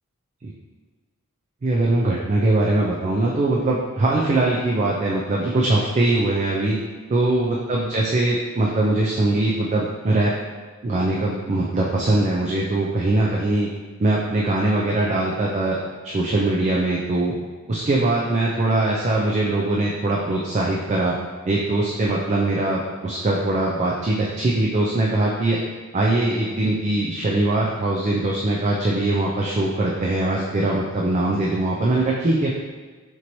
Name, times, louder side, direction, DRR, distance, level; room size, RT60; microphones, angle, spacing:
voice 1, 1.6-6.8 7.1-10.3 10.8-13.7 14.0-15.8 16.0-17.3 17.7-21.2 21.5-25.6 25.9-32.5, right 2 dB, 35° right, -3 dB, 0.4 m, -21 dB
4.4 x 2.9 x 2.7 m, 1.4 s
head